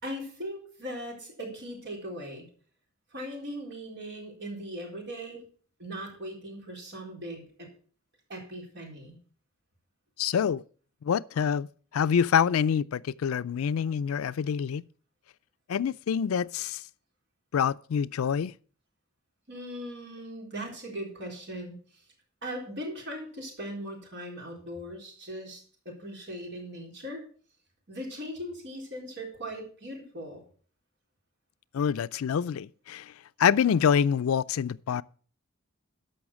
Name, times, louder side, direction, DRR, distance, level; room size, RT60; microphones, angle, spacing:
voice 1, 0.0-2.5 3.1-5.4 5.8-7.7 8.3-9.2 19.5-21.7 22.4-27.2 27.9-30.4, equal, 55° right, 4.0 m, -39 dB
voice 2, 10.2-10.6 11.0-11.7 11.9-14.8 15.7-16.8 17.5-18.5 31.7-33.1 33.4-35.0, left 7 dB, 80° left, 0.4 m, -26 dB
13.5 x 5.7 x 6.1 m
head